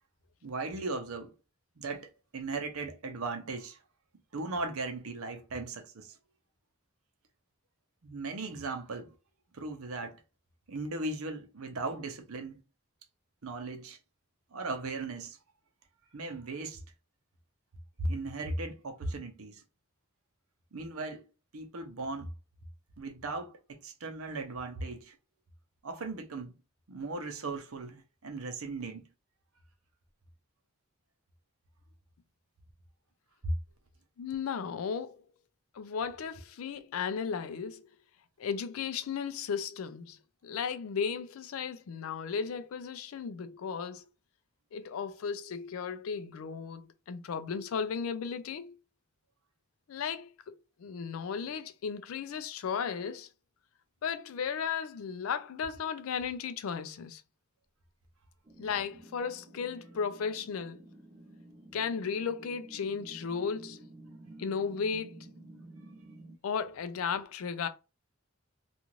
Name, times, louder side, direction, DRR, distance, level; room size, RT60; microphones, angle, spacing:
voice 1, 0.4-1.3 1.8-3.8 4.3-6.2 8.0-9.1 9.5-10.2 10.7-12.6 13.4-14.0 14.5-15.4 16.1-16.8 18.0-19.6 20.7-21.3 21.5-22.3 23.0-25.2 25.8-26.5 26.9-29.0 33.4-33.5, right 2 dB, 85° right, 0.7 m, -37 dB
voice 2, 34.2-35.2 35.7-37.9 38.4-44.1 44.7-48.8 49.9-50.5 50.8-53.3 54.0-57.2 58.6-60.8 61.7-63.8 64.4-65.3 66.4-67.7, left 6 dB, 75° left, 0.4 m, -35 dB
sound 1, 58.4-66.4, right 1 dB, 30° right, 0.4 m, -52 dB
2.5 x 2.4 x 2.9 m
head